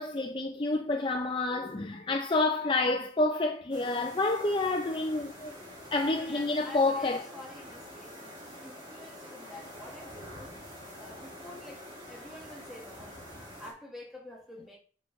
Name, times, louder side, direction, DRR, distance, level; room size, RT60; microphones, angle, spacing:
voice 1, 0.0-5.6 5.9-7.2, left 2 dB, 25° left, 0.5 m, -28 dB
sound 1, 3.7-13.7, equal, 25° right, 3.8 m, -47 dB
voice 2, 6.1-10.6 11.0-13.3 13.6-14.8, left 1 dB, ahead, 1.6 m, -48 dB
8.9 x 5.6 x 3.1 m
head